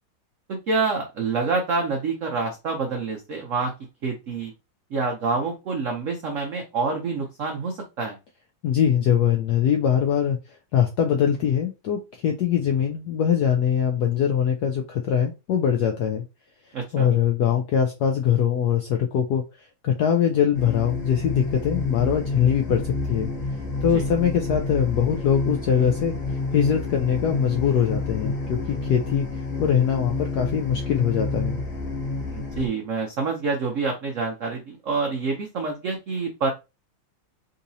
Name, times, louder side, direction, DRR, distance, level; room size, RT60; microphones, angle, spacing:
voice 1, 0.5-3.7 4.0-4.5 4.9-8.2 16.7-17.1 23.9-24.0 32.3-36.5, right 4 dB, 85° right, 2 dB, 0.6 m, -27 dB
voice 2, 8.6-16.2 16.9-23.3 23.8-26.2 26.5-31.6, left 8 dB, 80° left, 3 dB, 0.9 m, -22 dB
sound 1, 20.5-32.7, left 3 dB, 55° left, 1.8 m, -29 dB
3.9 x 2.8 x 2.6 m, 0.26 s
omnidirectional pair, 2.2 m